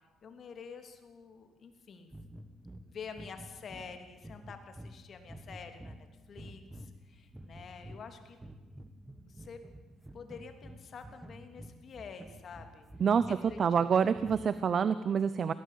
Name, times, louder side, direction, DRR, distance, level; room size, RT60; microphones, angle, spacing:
voice 1, 0.2-2.1 2.9-8.4 9.2-9.6 10.1-12.9 13.3-13.9 14.3-14.5, left 6 dB, 50° left, 7 dB, 3.2 m, -48 dB
sound 1, 2.1-14.8, equal, 10° right, 1.7 m, -50 dB
voice 2, 13.6-15.5, right 7 dB, 45° right, 14 dB, 0.8 m, -27 dB
21.0 x 18.5 x 8.5 m, 1.2 s
cardioid pair, 100°, 0 cm